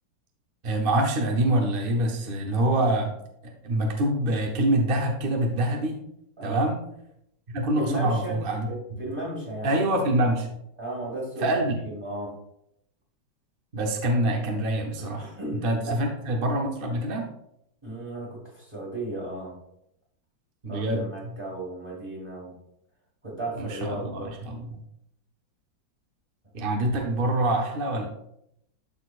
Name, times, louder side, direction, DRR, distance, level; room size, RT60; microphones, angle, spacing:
voice 1, 0.6-3.2 3.4-6.0 6.4-6.8 7.5-8.7 9.6-10.5 11.4-11.7 13.7-15.3 15.6-17.3 20.6-21.4 23.5-24.8 26.5-28.1, right 1 dB, 40° right, 2 dB, 0.8 m, -25 dB
voice 2, 6.4-6.7 7.8-8.4 8.7-9.8 10.8-12.3 15.0-16.1 17.8-19.5 20.7-22.5 23.2-24.4, right 2 dB, 15° right, -6 dB, 1.8 m, -35 dB
12.0 x 4.4 x 2.5 m, 0.77 s
omnidirectional pair, 2.1 m